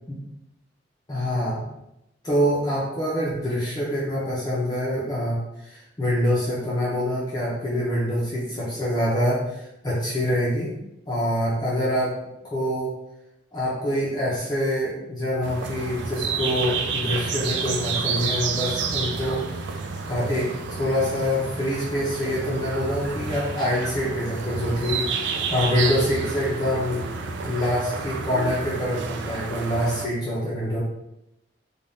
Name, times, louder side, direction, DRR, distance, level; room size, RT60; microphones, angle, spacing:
voice 1, 1.1-1.7 2.2-10.8 11.1-12.1 12.4-12.9 13.5-19.8 20.1-27.1 27.4-30.8, equal, 20° left, -7 dB, 0.5 m, -25 dB
sound 1, 15.4-30.1, right 5 dB, 70° right, 0.3 m, -30 dB
3.4 x 2.2 x 2.6 m, 0.87 s
head